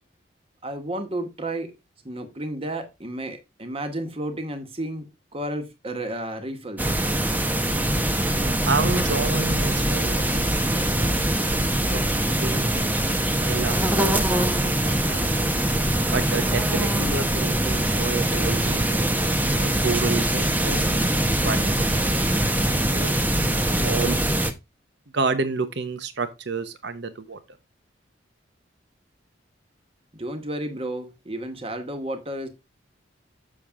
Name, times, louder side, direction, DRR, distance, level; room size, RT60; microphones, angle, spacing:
voice 1, 0.6-1.7 2.0-7.0 30.1-32.5, right 1 dB, 30° right, 1.4 m, -32 dB
sound 1, 6.8-24.5, right 1 dB, 10° right, 0.8 m, -23 dB
voice 2, 8.3-11.2 11.7-12.0 12.4-12.9 13.4-15.5 16.1-19.1 19.5-21.2 21.4-23.2 23.6-24.2 25.1-27.4, right 4 dB, 60° right, 0.9 m, -30 dB
7.4 x 6.5 x 3.6 m
head